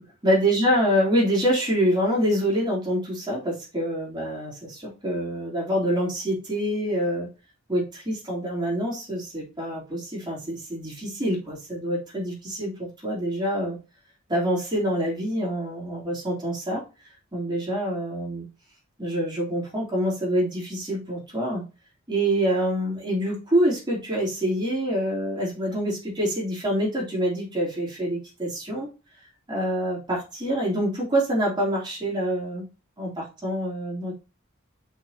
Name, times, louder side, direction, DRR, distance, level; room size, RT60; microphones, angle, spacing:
voice 1, 0.2-7.3 7.7-13.8 14.3-16.8 17.3-18.4 19.0-21.6 22.1-28.9 29.5-32.6 33.0-34.1, equal, 20° right, -4 dB, 3.4 m, -26 dB
6.2 x 6.2 x 2.9 m, 0.30 s
head